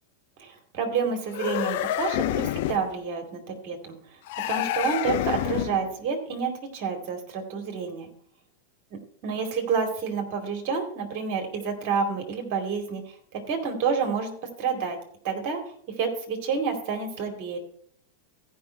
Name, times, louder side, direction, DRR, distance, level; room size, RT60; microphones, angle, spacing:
voice 1, 0.4-4.0 4.5-8.1 8.9-13.0 13.3-14.3 14.6-15.0 15.2-15.6 16.0-17.6, right 5 dB, 45° right, 3 dB, 2.4 m, -29 dB
sound 1, 1.3-2.9 4.3-5.9, left 15 dB, 50° left, 0.3 m, -28 dB
15.0 x 5.4 x 4.6 m, 0.62 s
figure-of-eight pair, 90°, 0 cm